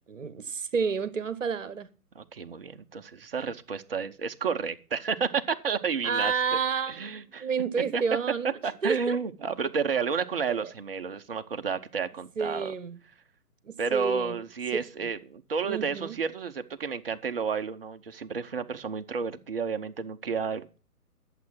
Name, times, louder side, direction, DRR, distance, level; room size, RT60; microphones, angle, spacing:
voice 1, 0.1-1.9 6.0-9.2 10.5-10.7 12.4-13.0 13.6-14.4 15.0-15.1 15.6-16.1, right 5 dB, 55° right, 1.3 m, -30 dB
voice 2, 2.1-6.6 6.9-7.5 7.9-8.0 8.6-12.7 13.8-20.7, right 5 dB, 40° right, 0.8 m, -31 dB
11.0 x 7.6 x 6.1 m
figure-of-eight pair, 140°, 46 cm